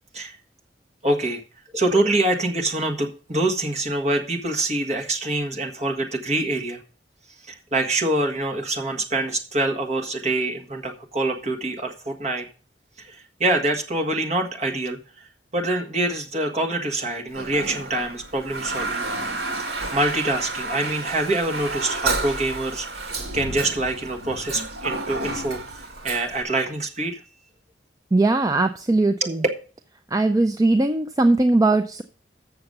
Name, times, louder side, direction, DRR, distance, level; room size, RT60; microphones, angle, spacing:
voice 1, 1.0-1.4 1.7-6.8 7.4-12.5 13.0-15.3 15.5-19.0 19.6-22.9 23.3-27.2 29.2-29.3, right 2 dB, 40° right, 3 dB, 1.5 m, -25 dB
Toilet flush, 17.3-26.4, right 2 dB, 75° right, 2.1 m, -31 dB
voice 2, 28.1-29.4 30.1-32.0, right 2 dB, 20° right, 8 dB, 0.4 m, -19 dB
7.0 x 6.9 x 6.6 m, 0.38 s
head